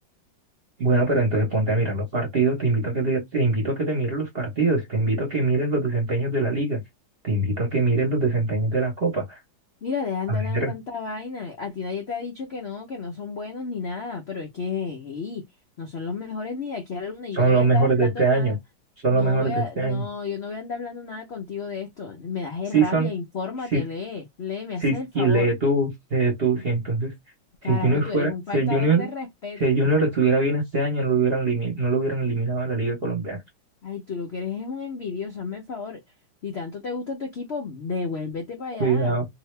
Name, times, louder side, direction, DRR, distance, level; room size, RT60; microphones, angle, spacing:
voice 1, 0.8-6.8 7.2-9.4 10.3-10.7 17.3-18.6 19.0-20.0 22.7-23.1 23.7-23.8 24.8-27.1 27.6-29.1 29.6-33.4 38.8-39.2, right 3 dB, 40° right, 1.0 m, -22 dB
voice 2, 9.8-15.4 15.8-18.6 19.1-25.5 26.5-26.6 27.6-29.6 33.8-36.0 36.4-39.2, left 5 dB, 80° left, 0.5 m, -32 dB
2.9 x 2.7 x 3.2 m
omnidirectional pair, 2.1 m